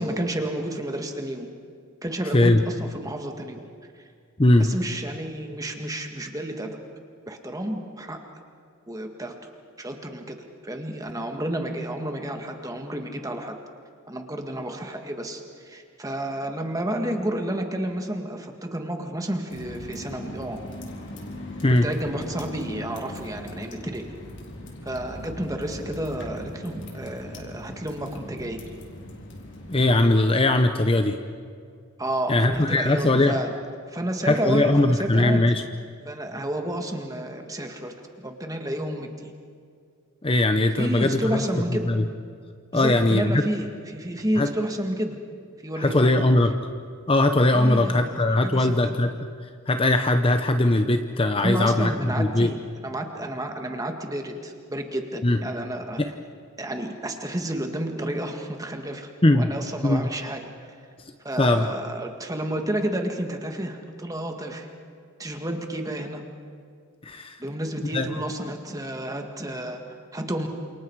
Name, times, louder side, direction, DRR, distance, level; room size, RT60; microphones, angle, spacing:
voice 1, 0.0-1.5 2.0-3.7 4.0-4.1 4.6-6.8 7.3-8.3 8.9-9.5 9.8-10.4 10.6-13.6 14.1-20.7 21.8-24.0 24.8-28.6 32.0-33.6 33.9-35.6 36.0-39.3 40.8-41.9 42.7-45.2 45.6-46.3 47.5-49.0 51.4-56.0 56.6-60.8 61.2-64.7 65.2-66.3 67.4-70.5, right 1 dB, 15° right, 4 dB, 1.8 m, -31 dB
sound 1, 19.5-29.9, left 1 dB, 55° left, 3.8 m, -39 dB
voice 2, 29.7-31.2 32.3-33.4 34.2-35.6 40.2-41.4 41.9-42.0 42.7-43.4 44.4-44.5 45.8-46.5 47.1-49.1 49.7-52.5 55.2-55.4 56.0-56.1 59.2-59.5 59.8-60.1 61.4-61.7 67.0-67.4 67.9-68.2, left 2 dB, 25° left, 7 dB, 0.8 m, -20 dB
29.0 x 28.0 x 4.8 m, 2.3 s
head